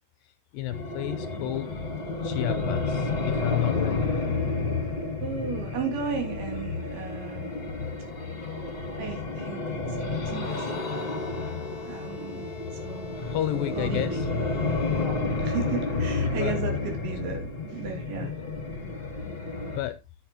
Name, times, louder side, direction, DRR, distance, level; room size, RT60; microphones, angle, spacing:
voice 1, 0.2-1.7 2.2-4.1 13.3-14.3 16.4-16.6 17.3-17.4 19.7-20.0, left 13 dB, 80° left, 2.1 m, -31 dB
sound 1, 0.7-19.8, left 3 dB, 20° left, 2.0 m, -30 dB
voice 2, 5.2-7.5 9.0-11.1 11.9-13.2 13.8-14.2 15.0-18.3, right 6 dB, 75° right, 4.5 m, -35 dB
Bowed string instrument, 10.4-15.6, left 4 dB, 10° right, 4.1 m, -43 dB
11.5 x 8.8 x 2.9 m
omnidirectional pair, 4.4 m